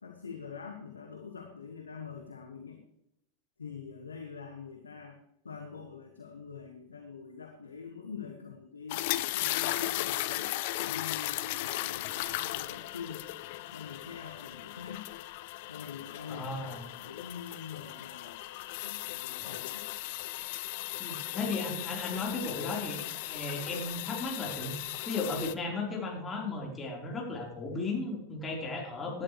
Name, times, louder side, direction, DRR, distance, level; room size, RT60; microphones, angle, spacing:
voice 1, 0.0-2.8 3.6-5.2 5.4-9.0 9.3-10.5 10.8-13.3 13.7-15.1 15.7-18.4 18.8-19.9, left 6 dB, 75° left, 3 dB, 1.7 m, -45 dB
sound 1, 8.9-25.5, left 17 dB, 50° left, 0.6 m, -37 dB
voice 2, 16.3-16.8 19.4-19.6 21.0-24.7 25.1-29.2, left 3 dB, 15° left, -1 dB, 4.3 m, -35 dB
16.5 x 12.0 x 3.3 m, 0.77 s
figure-of-eight pair, 90°, 0 cm